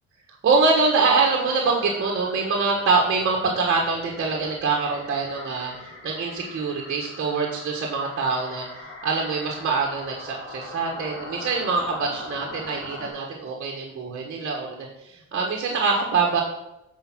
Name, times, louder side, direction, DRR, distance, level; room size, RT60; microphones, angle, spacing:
voice 1, 0.4-8.6 9.0-16.4, right 4 dB, 45° right, 0 dB, 1.5 m, -24 dB
sound 1, 0.8-13.1, left 2 dB, 50° left, 2.6 m, -41 dB
7.8 x 4.8 x 6.1 m, 0.90 s
cardioid pair, 90°, 30 cm